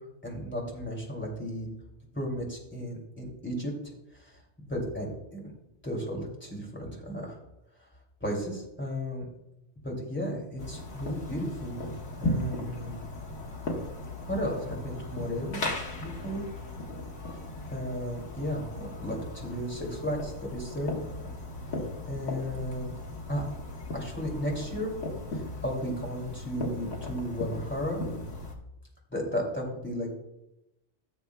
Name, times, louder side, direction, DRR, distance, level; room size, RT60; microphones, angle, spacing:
voice 1, 0.2-1.7 2.1-3.7 4.2-4.3 4.7-5.5 5.8-7.4 8.2-9.3 9.8-11.9 12.2-13.0 14.2-15.7 16.0-16.4 17.7-20.9 22.1-22.9 23.3-23.4 23.9-24.9 25.6-28.0 29.1-30.1, equal, 10° left, -2 dB, 2.5 m, -34 dB
sound 1, 10.6-28.6, left 2 dB, 80° left, 1.8 m, -37 dB
15.0 x 7.0 x 2.2 m, 0.87 s
omnidirectional pair, 1.2 m